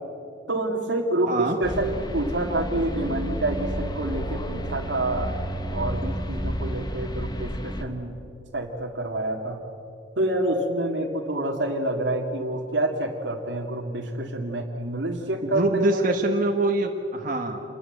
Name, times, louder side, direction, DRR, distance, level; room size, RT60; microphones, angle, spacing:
voice 1, 0.5-5.3 5.7-8.1 8.5-9.6 10.2-16.5, right 1 dB, 75° right, 0 dB, 2.1 m, -27 dB
sound 1, 1.6-7.8, equal, 20° left, 1.4 m, -31 dB
voice 2, 15.4-17.6, right 2 dB, 45° right, 2 dB, 1.5 m, -24 dB
27.5 x 20.5 x 8.0 m, 2.7 s
head